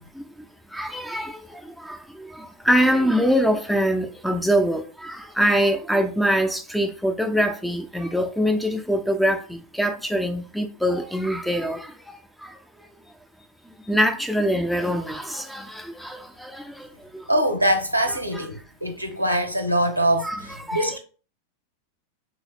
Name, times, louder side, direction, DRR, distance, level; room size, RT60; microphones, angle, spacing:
voice 1, 0.7-11.9 13.9-16.9 17.1-17.2 18.3-18.5 20.2-20.4 20.7-21.0, equal, ahead, 0.4 m, -24 dB
voice 2, 17.3-21.0, right 1 dB, 90° right, 0.5 m, -23 dB
3.0 x 2.7 x 2.6 m
figure-of-eight pair, 90°, 0 cm